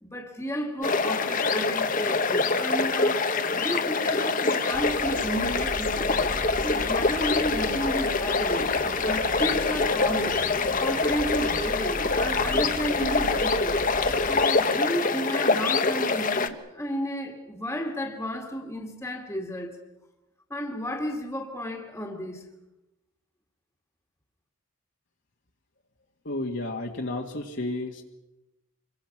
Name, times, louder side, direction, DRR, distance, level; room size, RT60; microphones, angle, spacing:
voice 1, 0.0-3.2 3.6-6.2 6.6-10.4 10.8-13.8 14.3-19.8 20.5-22.5, equal, 10° left, 2.1 m, -32 dB
sound 1, 0.8-16.5, left 4 dB, 40° left, 1.3 m, -25 dB
sound 2, 4.7-14.4, right 1 dB, 30° right, 1.5 m, -38 dB
voice 2, 26.2-28.0, left 2 dB, 55° left, 1.9 m, -32 dB
27.0 x 22.5 x 6.0 m
head